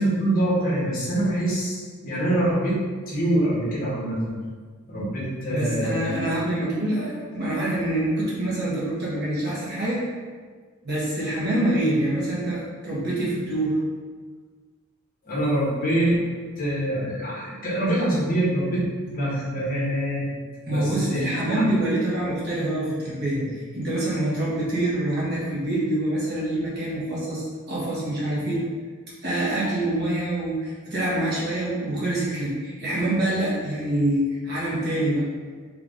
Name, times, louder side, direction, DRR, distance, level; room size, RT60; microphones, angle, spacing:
voice 1, 0.0-2.8 3.1-4.4 4.9-6.1 15.2-16.2 16.6-20.3 20.7-21.7 23.3-23.4, right 1 dB, 45° left, -6 dB, 1.4 m, -25 dB
voice 2, 5.5-10.0 10.8-13.8 20.6-28.6 29.2-35.3, right 1 dB, 50° right, -7 dB, 1.4 m, -25 dB
3.5 x 3.5 x 3.8 m, 1.5 s
head